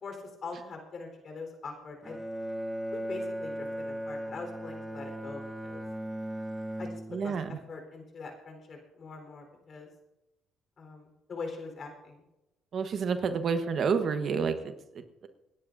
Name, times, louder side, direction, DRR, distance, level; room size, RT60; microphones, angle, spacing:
voice 1, 0.0-2.2 2.9-5.8 6.8-7.4 7.7-9.9 10.8-12.2, left 4 dB, 50° left, 4 dB, 4.0 m, -43 dB
Bowed string instrument, 2.0-7.5, equal, 5° right, 1.1 m, -37 dB
voice 2, 7.1-7.5 12.7-15.3, right 5 dB, 55° right, 8 dB, 1.1 m, -30 dB
28.5 x 10.0 x 2.6 m, 0.95 s
cardioid pair, 85°, 0 cm